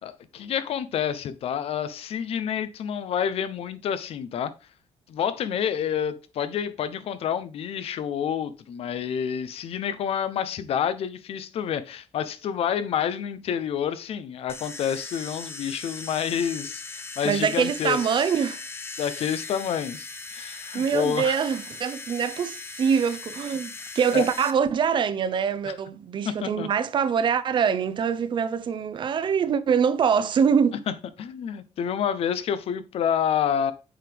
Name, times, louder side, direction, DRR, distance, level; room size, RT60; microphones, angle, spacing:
voice 1, 0.0-4.5 5.1-18.3 19.0-21.4 24.1-24.2 25.7-25.8 26.2-26.7 30.9-33.7, left 8 dB, 60° left, 0.8 m, -28 dB
sound 1, 14.5-24.5, left 3 dB, 20° left, 0.6 m, -39 dB
voice 2, 17.2-18.6 20.7-30.8, right 7 dB, 45° right, 0.7 m, -24 dB
7.4 x 4.8 x 3.5 m
cardioid pair, 130°, 11 cm